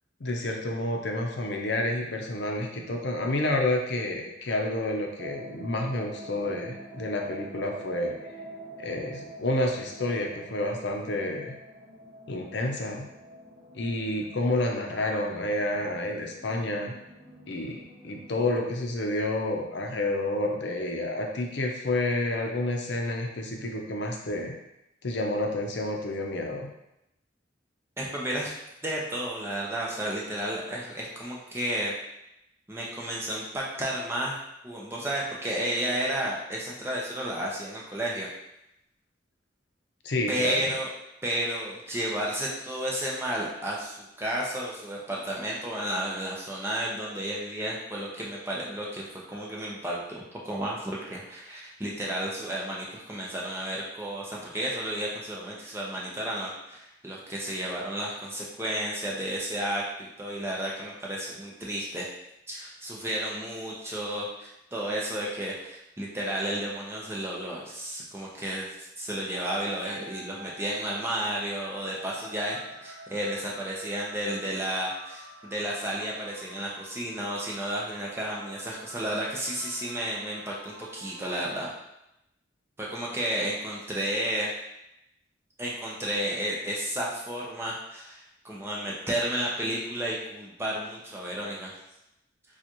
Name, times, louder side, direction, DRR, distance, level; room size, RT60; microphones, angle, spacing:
voice 1, 0.2-8.1 8.8-11.5 12.3-13.1 13.7-16.9 17.5-24.5 25.0-26.7 40.0-40.7, left 1 dB, 65° left, 1 dB, 0.6 m, -29 dB
sound 1, 5.2-18.6, right 1 dB, 15° left, 1.5 m, -46 dB
voice 2, 28.0-28.5 28.8-31.9 32.7-34.4 34.6-38.3 40.3-40.9 41.2-62.1 62.5-81.7 82.8-84.5 85.6-91.7, right 1 dB, 15° right, -4 dB, 0.7 m, -32 dB
sound 2, 69.3-81.5, right 1 dB, 85° right, 0.7 m, -48 dB
6.9 x 2.4 x 3.0 m, 0.86 s
head